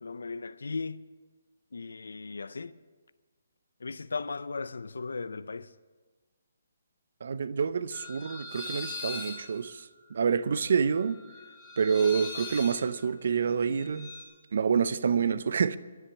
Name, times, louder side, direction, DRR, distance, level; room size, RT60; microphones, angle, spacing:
voice 1, 0.0-1.0 1.7-2.7 3.8-5.7, left 4 dB, 90° left, 0.5 m, -37 dB
voice 2, 7.2-11.2 11.8-14.1 14.5-15.8, right 6 dB, 60° right, 0.6 m, -27 dB
sound 1, 7.9-14.2, left 3 dB, ahead, 3.8 m, -42 dB
11.0 x 10.0 x 8.7 m
hypercardioid pair, 165°, 0 cm